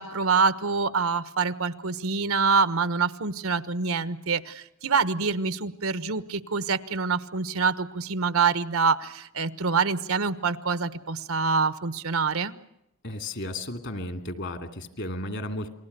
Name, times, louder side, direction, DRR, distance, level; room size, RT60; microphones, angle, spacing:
voice 1, 0.0-12.5, right 5 dB, 80° right, 14 dB, 1.2 m, -26 dB
voice 2, 13.0-15.7, left 1 dB, 60° left, 9 dB, 2.6 m, -34 dB
29.0 x 20.5 x 6.8 m, 0.82 s
head